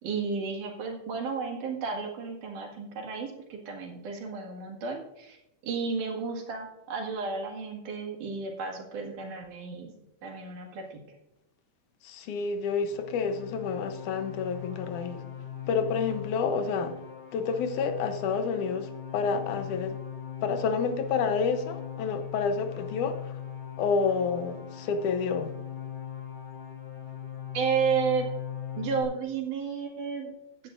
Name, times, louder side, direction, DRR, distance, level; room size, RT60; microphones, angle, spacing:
voice 1, 0.0-5.4 5.6-9.9 10.2-11.0 27.5-28.3 28.8-30.3, right 5 dB, 85° right, 3.5 m, -32 dB
voice 2, 12.0-15.3 15.7-17.0 17.3-20.0 20.4-23.4 23.8-25.6, left 5 dB, 80° left, 2.4 m, -29 dB
sound 1, 12.8-29.0, left 9 dB, 50° left, 3.5 m, -40 dB
15.5 x 9.8 x 2.5 m
omnidirectional pair, 3.5 m